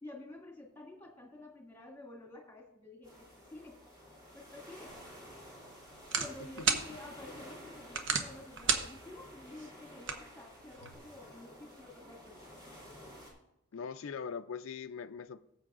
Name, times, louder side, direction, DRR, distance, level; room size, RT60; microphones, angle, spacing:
voice 1, 0.0-3.8 4.3-5.0 5.3-5.6 6.2-12.4, left 2 dB, 10° left, -2 dB, 2.2 m, -50 dB
sound 1, 3.0-13.3, equal, 20° right, 3.2 m, -52 dB
sound 2, 4.9-10.9, right 5 dB, 60° right, 1.0 m, -37 dB
voice 2, 13.7-15.4, left 6 dB, 75° left, 10 dB, 0.4 m, -41 dB
18.0 x 7.8 x 2.5 m, 0.86 s
head